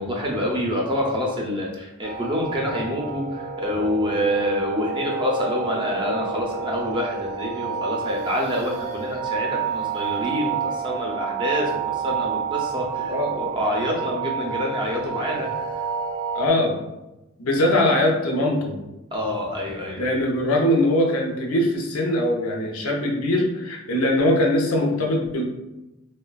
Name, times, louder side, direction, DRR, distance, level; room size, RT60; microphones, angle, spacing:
voice 1, 0.0-15.8 19.1-20.3, left 1 dB, 20° right, -2 dB, 0.4 m, -27 dB
sound 1, 2.0-16.5, right 7 dB, 80° right, 0.5 m, -29 dB
voice 2, 13.1-13.5 16.3-16.8 17.4-18.8 20.0-25.5, left 1 dB, 80° left, 1 dB, 0.5 m, -21 dB
3.2 x 2.1 x 2.2 m, 0.97 s
head